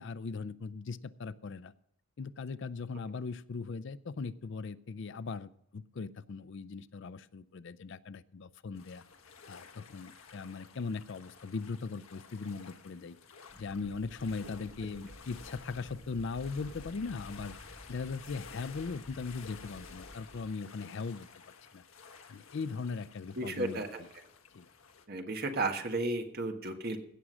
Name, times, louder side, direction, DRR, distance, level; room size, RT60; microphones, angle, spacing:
voice 1, 0.0-1.7 2.2-9.0 9.5-13.2 13.6-17.5 17.9-21.3 21.7-21.8 22.3-23.8 24.5-24.7, left 4 dB, 55° left, 17 dB, 0.4 m, -39 dB
sound 1, 8.8-25.1, left 5 dB, 75° left, 1.3 m, -53 dB
sound 2, 13.5-20.7, equal, 5° right, 1.8 m, -53 dB
voice 2, 23.4-24.0 25.1-27.0, right 2 dB, 45° right, 4 dB, 1.4 m, -33 dB
17.0 x 6.2 x 6.2 m, 0.73 s
head